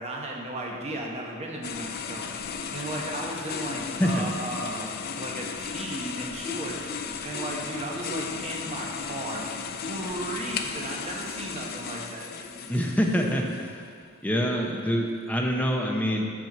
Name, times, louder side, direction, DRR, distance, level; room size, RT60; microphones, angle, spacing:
voice 1, 0.0-2.4 2.7-4.9 5.2-6.8 7.2-9.5 9.8-12.7, right 1 dB, 30° right, -1 dB, 1.0 m, -35 dB
sound 1, 1.6-13.9, left 6 dB, 50° left, 0.4 m, -35 dB
voice 2, 12.7-13.4 14.2-16.2, equal, 10° left, 0 dB, 0.7 m, -25 dB
6.2 x 4.4 x 6.6 m, 2.2 s
head